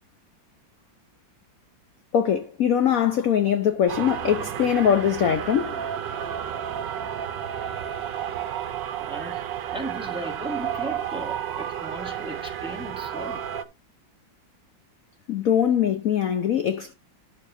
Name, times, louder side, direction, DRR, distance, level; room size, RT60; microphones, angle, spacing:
voice 1, 2.1-5.8 15.3-16.9, left 9 dB, 60° left, 1.0 m, -22 dB
sound 1, 3.9-13.6, right 9 dB, 75° right, 1.4 m, -31 dB
voice 2, 9.0-13.4, right 1 dB, 5° right, 1.4 m, -37 dB
11.0 x 6.8 x 2.6 m
omnidirectional pair, 2.0 m